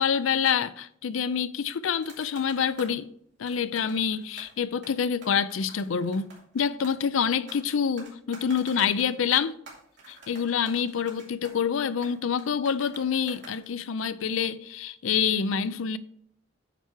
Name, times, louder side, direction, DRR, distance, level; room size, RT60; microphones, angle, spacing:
voice 1, 0.0-3.1 3.4-9.6 10.1-16.0, left 7 dB, 90° left, 0.4 m, -27 dB
sound 1, 2.0-3.0 3.5-4.6 4.8-7.6 8.0-14.0, right 3 dB, 60° right, 2.8 m, -49 dB
9.0 x 4.6 x 4.5 m
head